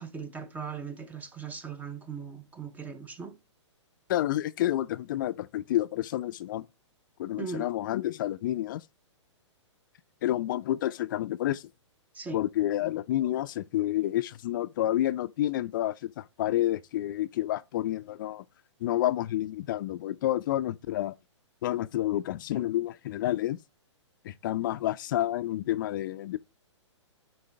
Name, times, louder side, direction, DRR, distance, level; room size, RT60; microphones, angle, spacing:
voice 1, 0.0-3.4 7.4-7.7 12.1-12.4, right 4 dB, 10° right, 0.6 m, -38 dB
voice 2, 4.1-6.6 7.2-8.8 10.2-11.7 12.3-18.4 18.8-21.1 21.6-23.6 24.2-26.4, left 13 dB, 40° left, 0.5 m, -29 dB
8.8 x 3.9 x 3.2 m
figure-of-eight pair, 120°, 16 cm